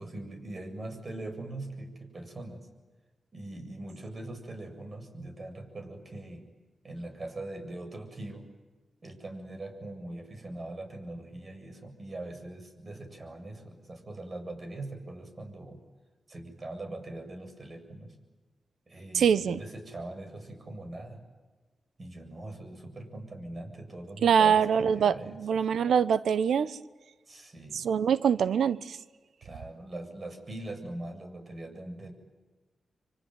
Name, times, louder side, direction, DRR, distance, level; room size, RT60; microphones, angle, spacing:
voice 1, 0.0-2.7 3.3-6.5 6.8-8.4 9.0-15.8 16.3-18.1 18.9-21.2 22.0-25.4 27.3-27.8 29.4-32.1, right 2 dB, 45° right, 6 dB, 7.5 m, -41 dB
voice 2, 19.1-19.6 24.2-26.8 27.7-29.0, right 7 dB, 85° right, 16 dB, 1.0 m, -24 dB
25.5 x 25.0 x 9.3 m, 1.3 s
cardioid pair, 50°, 0 cm